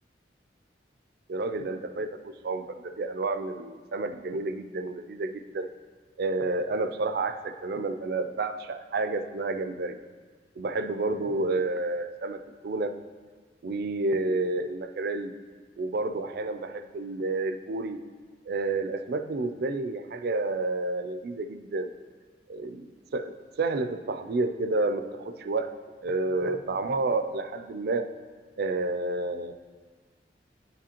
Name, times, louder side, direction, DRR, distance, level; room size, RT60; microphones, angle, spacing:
voice 1, 1.3-5.7 6.2-10.0 10.6-12.9 13.6-15.3 15.8-18.0 18.5-21.9 22.5-25.7 26.0-28.1 28.6-29.5, right 3 dB, 60° right, 10 dB, 0.4 m, -30 dB
10.5 x 4.9 x 2.9 m, 1.5 s
head